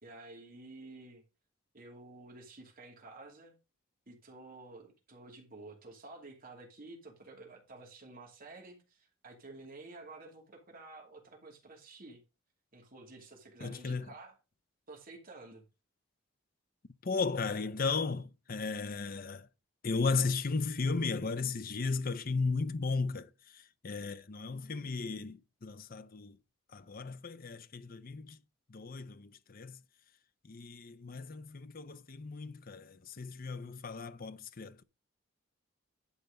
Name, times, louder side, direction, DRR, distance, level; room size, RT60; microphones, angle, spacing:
voice 1, 0.0-1.2 1.7-3.6 4.1-12.2 12.7-14.3 14.9-15.7, right 2 dB, 45° right, 2.6 m, -51 dB
voice 2, 13.6-14.1 17.0-19.5 19.8-26.4 26.7-28.4 28.7-29.8 30.4-34.8, left 4 dB, 45° left, 0.6 m, -35 dB
11.5 x 4.4 x 5.2 m
head